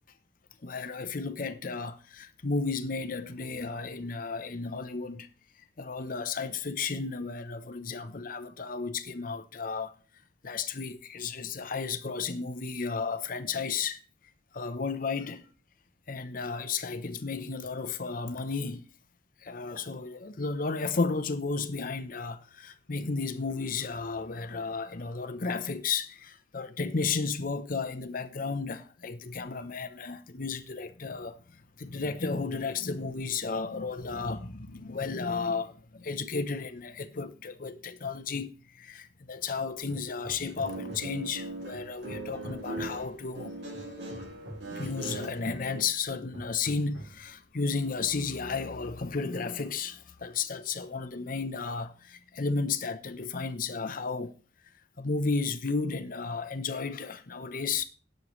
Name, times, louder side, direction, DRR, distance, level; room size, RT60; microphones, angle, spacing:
voice 1, 0.6-5.3 5.8-9.9 10.4-14.0 14.5-15.5 16.1-18.8 19.4-31.4 31.8-43.6 44.7-54.3 55.0-57.8, left 4 dB, 50° left, 0.8 m, -33 dB
Hammer, 39.9-41.3 41.7-43.1 43.7-45.8 46.3-47.3, right 1 dB, 90° right, 3.2 m, -46 dB
Guitar, 40.5-45.8, right 2 dB, 70° right, 2.4 m, -40 dB
18.0 x 6.5 x 3.1 m
head